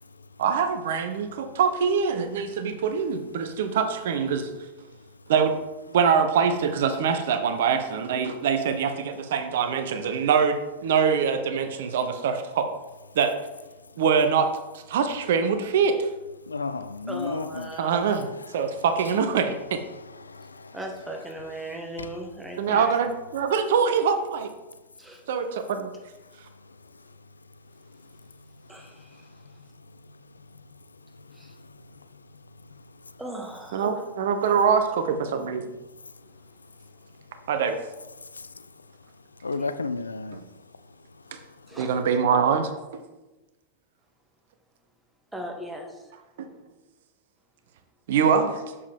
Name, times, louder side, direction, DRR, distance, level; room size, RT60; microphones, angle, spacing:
voice 1, 0.4-4.5 5.3-5.5 5.9-12.7 13.1-13.4 14.0-14.5 14.7-16.1 17.8-18.3 18.5-19.8 22.6-24.5 25.3-25.9 33.7-35.6 37.5-37.8 41.8-42.7 46.4-46.5 48.1-48.5, right 6 dB, 55° right, 0.7 m, -24 dB
voice 2, 16.5-17.8 18.6-18.8 19.9-20.8 22.0-22.1 26.7-27.0 27.9-33.2 38.2-38.5 39.4-40.5 41.3-41.8, left 4 dB, 75° left, 0.3 m, -37 dB
voice 3, 17.1-18.0 20.7-22.9 25.0-25.2 28.7-29.2 31.3-31.5 33.2-34.0 41.7-41.9 45.3-46.1, right 1 dB, 5° right, 1.4 m, -37 dB
7.0 x 6.6 x 3.5 m
figure-of-eight pair, 90°, 0 cm